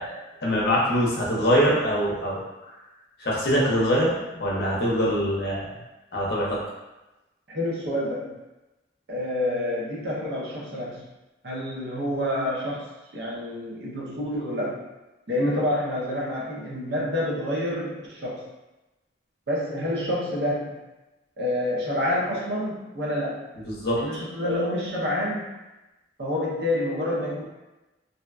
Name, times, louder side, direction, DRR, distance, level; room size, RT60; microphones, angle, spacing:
voice 1, 0.0-2.4 3.2-5.7 6.1-6.6 23.7-24.0, equal, 55° left, -5 dB, 0.6 m, -23 dB
voice 2, 7.5-8.4 9.1-11.0 11.4-14.8 15.3-18.5 19.5-20.8 21.4-23.4 24.0-25.5 26.2-27.4, left 1 dB, 60° right, -4 dB, 0.6 m, -28 dB
2.6 x 2.2 x 2.3 m, 1.0 s
head